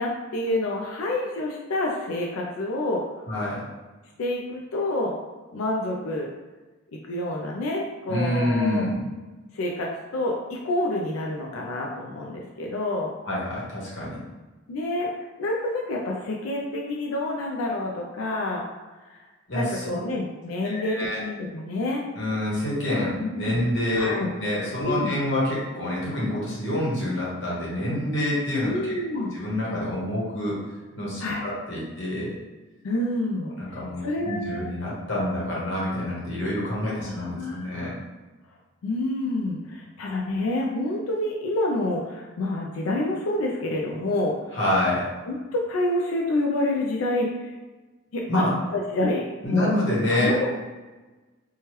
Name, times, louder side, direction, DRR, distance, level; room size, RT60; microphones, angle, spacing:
voice 1, 0.0-3.0 4.2-5.1 5.5-6.3 7.1-8.8 9.5-13.1 14.7-15.1 15.4-18.6 19.0-19.2 19.5-22.0 23.2-23.6 24.0-24.3 24.8-25.2 28.6-29.3 31.2-31.4 32.8-34.7 36.8-37.7 38.8-44.4 45.3-47.5 48.1-48.4 48.7-49.7 50.1-50.5, left 1 dB, 80° left, -1 dB, 0.4 m, -28 dB
voice 2, 3.3-3.6 8.1-9.0 13.2-14.2 19.5-20.0 20.6-21.2 22.1-24.1 24.4-30.6 30.9-32.4 33.5-37.9 44.5-45.1 48.3-48.5 49.4-50.3, left 1 dB, 55° left, -6 dB, 1.1 m, -27 dB
3.0 x 2.3 x 3.0 m, 1.2 s
head